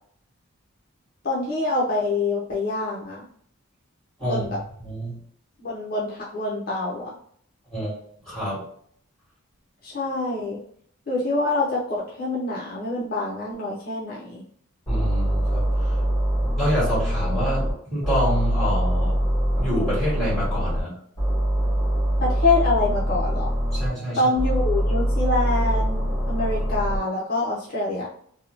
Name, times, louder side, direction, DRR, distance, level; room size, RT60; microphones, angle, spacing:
voice 1, 1.2-3.3 4.2-4.6 5.6-7.1 9.8-10.6 11.1-14.4 22.2-23.5 24.2-28.1, left 2 dB, 45° left, -5 dB, 0.6 m, -25 dB
voice 2, 4.8-5.2 7.7-8.6 14.9-15.9 16.6-19.1 19.6-20.9 23.7-24.3, equal, ahead, -10 dB, 1.5 m, -27 dB
sound 1, 14.9-17.7 18.0-20.8 21.2-23.9 24.4-27.0, equal, 20° left, 0.9 m, -23 dB
2.7 x 2.1 x 2.7 m, 0.62 s
head